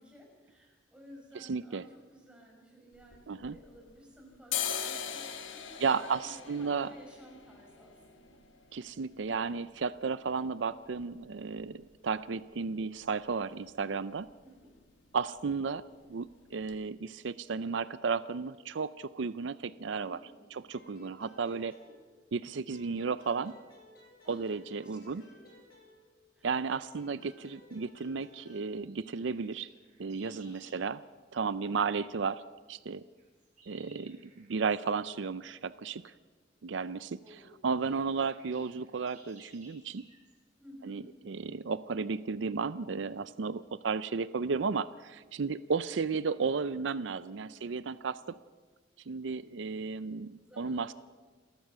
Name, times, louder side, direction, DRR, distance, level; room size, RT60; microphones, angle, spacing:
voice 1, 0.0-8.4 14.3-14.7 20.0-20.5 21.2-21.3 24.2-24.5 24.8-25.6 26.3-26.5 30.2-30.7 37.2-37.6 40.6-41.1 47.4-47.8 50.5-50.9, equal, 5° right, -1 dB, 5.4 m, -55 dB
voice 2, 1.4-1.8 3.3-3.6 5.8-6.9 8.7-14.3 15.1-15.8 16.1-20.2 20.5-21.7 22.3-23.6 24.3-25.2 26.4-29.7 30.0-31.0 31.3-32.4 32.7-33.0 33.7-36.0 36.6-37.2 37.6-40.1 40.8-48.2 49.1-50.9, right 5 dB, 80° right, 15 dB, 0.5 m, -33 dB
sound 1, 2.9-4.0 4.3-12.0 12.4-12.5 12.7-13.3 13.6-13.8 14.1-14.3 14.6-15.3 15.6-15.8 16.3-16.4 16.7-16.8, left 8 dB, 85° left, 1.6 m, -41 dB
sound 2, 20.7-22.4 22.7-26.3 26.7-28.7, left 1 dB, 55° left, 6.4 m, -58 dB
sound 3, 28.8-30.8 32.9-34.9 36.7-36.8 37.4-37.5 37.7-40.4, right 3 dB, 40° right, 7.9 m, -61 dB
28.5 x 13.5 x 6.8 m, 1.4 s
head